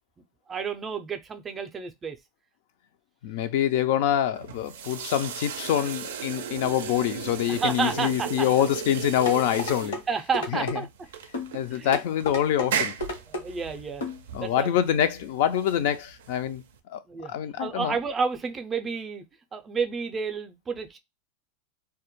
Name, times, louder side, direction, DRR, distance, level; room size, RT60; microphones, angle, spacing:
voice 1, 0.5-2.2 7.5-8.5 9.8-10.9 11.7-12.0 13.3-14.0 14.4-14.8 17.1-17.3 17.6-19.2 19.5-21.0, right 5 dB, 20° right, 0.4 m, -30 dB
voice 2, 3.2-10.0 10.5-10.8 11.5-13.0 14.3-16.6 16.9-17.0 17.3-18.0, left 10 dB, 65° left, 0.4 m, -25 dB
sound 1, 4.3-16.8, right 7 dB, 85° right, 0.4 m, -36 dB
sound 2, 9.3-10.0 10.3-10.8 11.3-11.5 11.9-12.7 13.0-13.4 14.0-14.2 14.6-14.7, left 2 dB, 85° left, 1.0 m, -31 dB
2.2 x 2.1 x 2.9 m
supercardioid pair, 120°, 0 cm